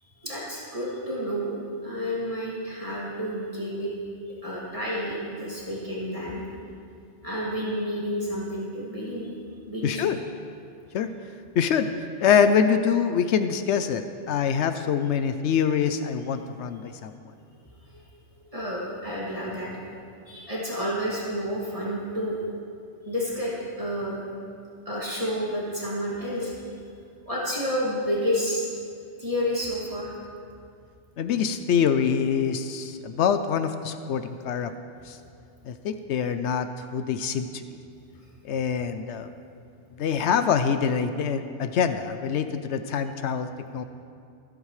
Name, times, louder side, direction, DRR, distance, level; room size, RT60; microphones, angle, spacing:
voice 1, 0.2-3.9 4.4-6.4 7.2-9.3 9.7-10.0 16.3-16.4 17.9-18.0 18.4-19.8 20.3-22.4 23.0-24.3 24.9-26.6 27.3-28.6 29.2-30.1 34.1-34.2, equal, 30° right, -6 dB, 2.4 m, -30 dB
voice 2, 9.8-10.2 10.9-11.1 11.6-11.9 12.2-17.1 31.2-34.7 35.1-35.2 35.6-37.6 38.4-39.3 39.9-43.8, left 7 dB, 80° left, 9 dB, 0.9 m, -25 dB
24.5 x 8.8 x 3.2 m, 2.4 s
omnidirectional pair, 1.2 m